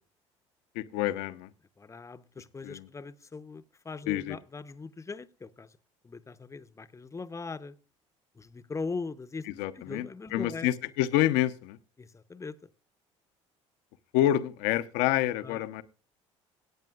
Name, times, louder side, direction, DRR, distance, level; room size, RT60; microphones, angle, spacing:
voice 1, 0.7-1.5 2.6-2.9 4.1-4.4 9.6-11.8 14.1-15.8, left 13 dB, 65° left, 12 dB, 0.7 m, -28 dB
voice 2, 1.8-5.8 6.0-7.7 8.3-10.7 12.0-12.7 15.4-15.6, left 4 dB, 20° left, 12 dB, 0.8 m, -40 dB
22.5 x 9.0 x 2.4 m, 0.34 s
figure-of-eight pair, 60°, 16 cm